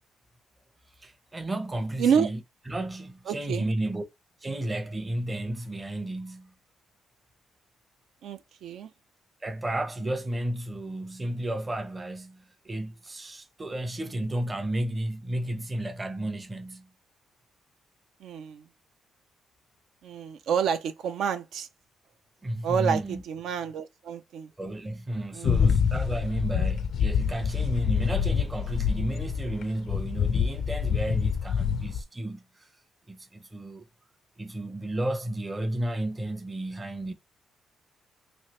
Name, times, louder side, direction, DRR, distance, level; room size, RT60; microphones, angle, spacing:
voice 1, 1.0-2.4 2.7-4.0 4.4-6.5 9.4-16.9 22.4-23.2 24.6-32.7 33.1-33.8 34.4-37.1, right 1 dB, 20° right, 0.6 m, -32 dB
voice 2, 3.3-3.7 8.2-8.9 18.2-18.6 20.0-21.7 22.6-24.5 25.3-25.7, right 7 dB, 75° right, 0.4 m, -29 dB
sound 1, 25.4-29.6 29.9-32.0, left 7 dB, 65° left, 0.4 m, -26 dB
3.1 x 2.8 x 2.9 m
cardioid pair, 90°, 0 cm